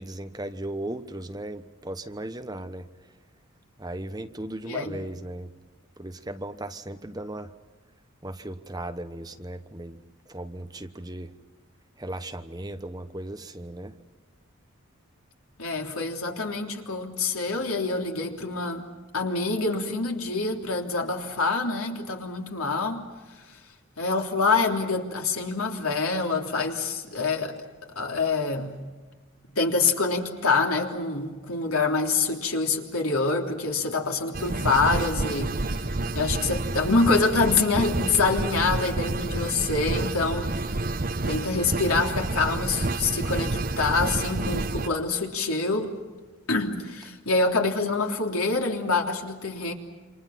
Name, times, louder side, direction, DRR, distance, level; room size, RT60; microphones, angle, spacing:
voice 1, 0.0-2.9 3.8-5.5 6.0-7.5 8.2-11.3 12.0-13.9 47.0-47.1, right 1 dB, 20° right, 9 dB, 1.1 m, -37 dB
voice 2, 4.7-5.0 15.6-18.8 19.1-23.0 24.0-27.5 27.9-28.7 29.5-35.5 36.1-40.5 41.2-45.9 46.5-49.7, left 3 dB, 85° left, 2 dB, 3.3 m, -26 dB
sound 1, 34.3-44.9, right 2 dB, 40° right, 0.9 m, -29 dB
28.5 x 26.5 x 5.9 m, 1.3 s
head